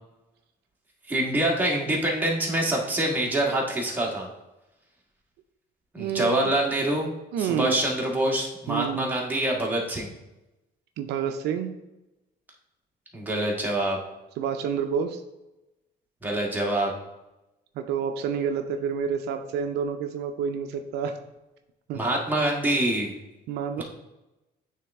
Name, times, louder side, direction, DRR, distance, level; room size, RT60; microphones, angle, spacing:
voice 1, 1.1-4.3 5.9-7.1 7.4-10.1 13.1-14.0 16.2-16.9 21.9-23.2 23.8-23.9, right 1 dB, 10° right, -2 dB, 1.5 m, -25 dB
voice 2, 6.0-6.5 7.3-7.8 8.7-9.1 11.0-11.7 14.4-15.2 17.8-21.2 21.9-22.0 23.5-23.8, right 7 dB, 80° right, 6 dB, 0.5 m, -29 dB
8.5 x 3.4 x 3.5 m, 0.98 s
cardioid pair, 110°, 17 cm